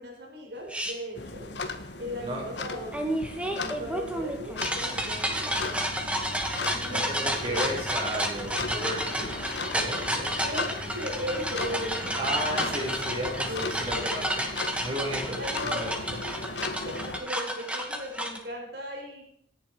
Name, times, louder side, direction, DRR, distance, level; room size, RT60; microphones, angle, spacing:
voice 1, 0.0-1.5 2.0-3.1 3.5-5.8 6.7-7.8 10.4-12.2 12.5-12.9 13.5-13.7 15.4-15.8 16.1-16.6 16.9-19.2, equal, 65° right, 0 dB, 4.7 m, -38 dB
sound 1, 0.7-0.9 2.9-18.4, right 1 dB, 5° right, 2.4 m, -31 dB
sound 2, 1.1-17.2, left 3 dB, 80° left, 1.8 m, -37 dB
sound 3, 5.0-14.0, left 1 dB, 25° left, 4.2 m, -44 dB
voice 2, 6.8-10.4 12.2-14.5 14.8-16.0, equal, 35° right, -1 dB, 5.5 m, -34 dB
27.0 x 11.0 x 4.9 m, 0.71 s
head